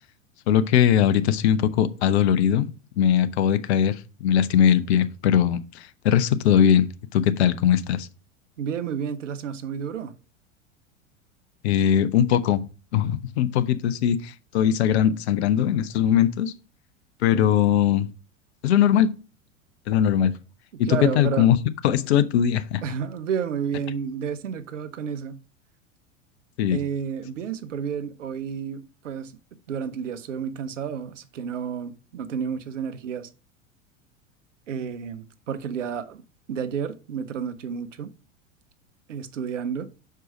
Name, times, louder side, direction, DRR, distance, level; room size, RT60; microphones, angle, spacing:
voice 1, 0.5-2.7 3.0-8.1 11.6-12.6 12.9-16.5 17.2-18.1 18.6-19.1 19.9-20.3 20.8-21.6 21.8-22.8 26.6-26.8, left 9 dB, 55° left, 0.7 m, -20 dB
voice 2, 8.6-10.1 17.3-17.8 20.7-21.5 22.8-25.4 26.7-29.3 29.7-33.3 34.7-36.2 36.5-38.1 39.1-39.9, right 7 dB, 65° right, 0.8 m, -31 dB
6.1 x 4.6 x 5.0 m
figure-of-eight pair, 85°, 39 cm